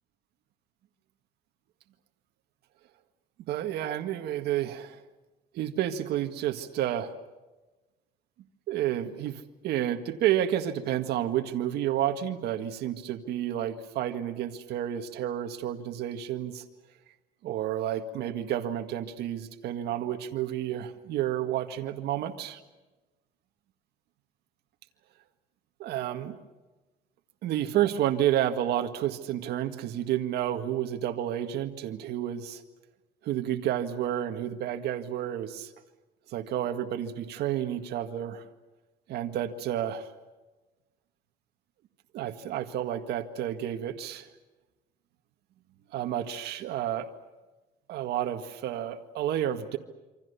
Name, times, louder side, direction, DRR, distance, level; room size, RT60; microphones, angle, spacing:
voice 1, 3.5-5.0 5.5-7.1 8.7-16.6 17.4-22.6 25.8-26.4 27.4-32.6 33.2-35.7 36.3-38.5 39.1-40.1 42.1-44.3 45.9-47.1 47.9-49.8, right 11 dB, 75° right, 6 dB, 1.9 m, -30 dB
27.5 x 25.5 x 7.0 m, 1.1 s
cardioid pair, 110°, 17 cm